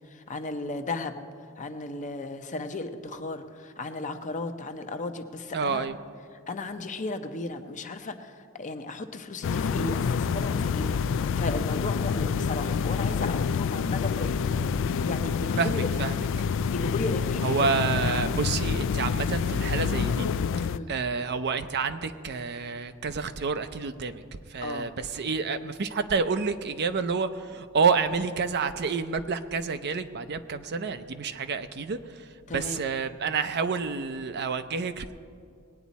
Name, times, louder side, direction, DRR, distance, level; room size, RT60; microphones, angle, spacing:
voice 1, 0.1-1.2 1.6-5.9 6.5-14.4 14.8-15.9 16.7-17.8 20.6-20.9 24.6-24.9 32.5-32.8, left 2 dB, 35° left, 7 dB, 0.7 m, -35 dB
voice 2, 5.5-6.0 14.5-15.0 15.6-16.2 17.4-20.3 20.9-24.2 24.5-35.1, right 5 dB, 50° right, 10 dB, 0.6 m, -29 dB
sound 1, 9.4-20.8, left 6 dB, 60° left, 0.3 m, -27 dB
20.0 x 9.1 x 4.1 m, 2.2 s
head